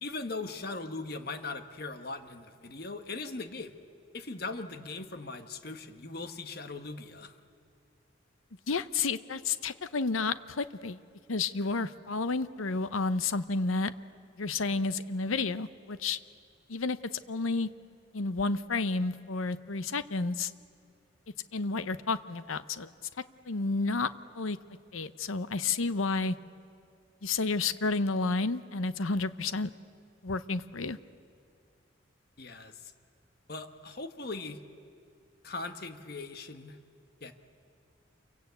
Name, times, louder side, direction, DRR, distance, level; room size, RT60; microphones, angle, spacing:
voice 1, 0.0-3.7 4.1-7.3 32.4-32.9 33.5-34.6 35.4-36.8 37.2-37.3, left 3 dB, 50° left, 8 dB, 1.3 m, -39 dB
voice 2, 8.7-11.0 11.3-13.9 14.4-16.2 16.7-17.0 17.3-17.7 18.1-20.5 21.5-22.9 23.5-24.1 24.3-24.6 24.9-26.4 27.2-29.7 30.2-31.0, left 3 dB, 85° left, 13 dB, 0.8 m, -31 dB
28.5 x 23.5 x 8.2 m, 2.3 s
head